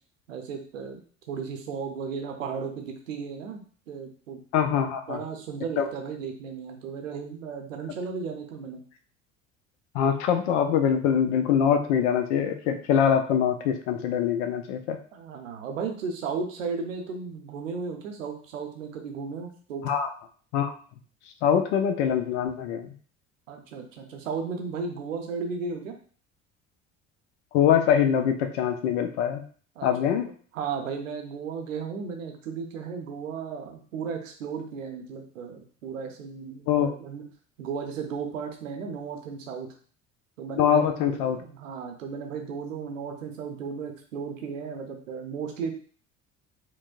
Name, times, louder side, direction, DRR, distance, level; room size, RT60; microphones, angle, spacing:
voice 1, 0.3-3.6 3.9-4.4 4.7-8.8 15.1-19.9 23.5-25.9 29.8-30.2 30.5-37.2 37.6-39.7 40.4-45.7, right 5 dB, 80° right, 4 dB, 0.7 m, -35 dB
voice 2, 4.5-5.2 5.8-5.9 9.9-15.0 19.8-20.1 20.5-20.7 21.4-22.9 27.5-29.4 29.8-30.2 36.7-36.9 40.6-41.4, left 8 dB, 60° left, 7 dB, 0.5 m, -23 dB
4.5 x 2.1 x 2.4 m, 0.44 s
figure-of-eight pair, 60°, 39 cm